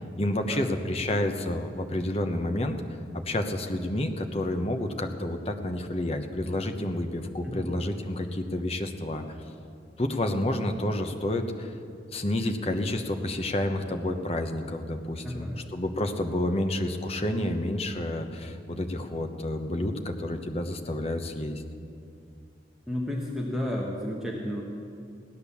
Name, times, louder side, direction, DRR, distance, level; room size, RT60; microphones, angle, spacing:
voice 1, 0.2-9.2 10.0-11.7 12.1-21.6, left 1 dB, 30° left, 6 dB, 1.0 m, -29 dB
voice 2, 15.2-15.6 22.9-24.6, left 1 dB, ahead, -3 dB, 1.2 m, -32 dB
16.5 x 10.0 x 7.1 m, 2.4 s
head